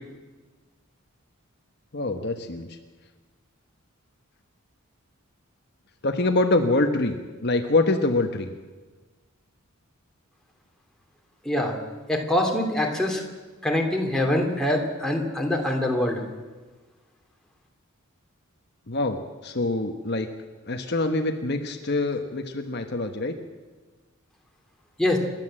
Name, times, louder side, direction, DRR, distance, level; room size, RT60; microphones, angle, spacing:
voice 1, 1.9-2.8 6.0-8.5 18.9-20.3 20.7-23.3, left 2 dB, 50° left, 5 dB, 1.2 m, -25 dB
voice 2, 12.1-13.2 13.6-16.2 25.0-25.2, left 1 dB, 5° left, 0 dB, 2.8 m, -24 dB
28.0 x 12.0 x 7.6 m, 1.3 s
head